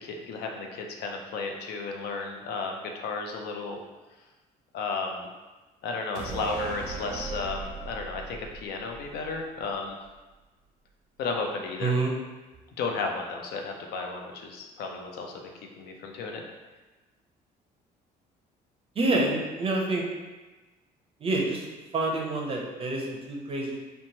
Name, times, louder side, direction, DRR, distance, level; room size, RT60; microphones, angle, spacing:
voice 1, 0.0-3.8 4.7-5.3 5.8-10.0 11.2-11.9 12.8-16.4, left 4 dB, 70° left, 2 dB, 0.5 m, -33 dB
sound 1, 6.1-9.7 10.0-10.1, right 5 dB, 85° right, 0.5 m, -38 dB
voice 2, 11.8-12.1 19.0-20.0 21.2-21.6 21.9-23.8, right 2 dB, 35° right, -1 dB, 0.5 m, -27 dB
2.9 x 2.1 x 2.7 m, 1.2 s
cardioid pair, 110°, 17 cm